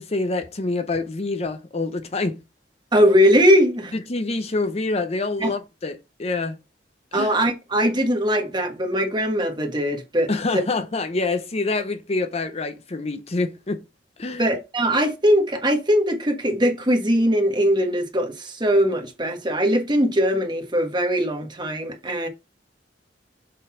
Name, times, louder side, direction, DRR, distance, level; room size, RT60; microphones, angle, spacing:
voice 1, 0.0-2.4 4.1-6.6 7.1-7.3 10.3-13.8 14.2-14.5, left 3 dB, 35° left, 0.7 m, -26 dB
voice 2, 2.9-3.9 5.4-5.5 7.1-10.6 14.4-22.3, equal, 25° right, 1.4 m, -20 dB
6.7 x 3.9 x 4.8 m
head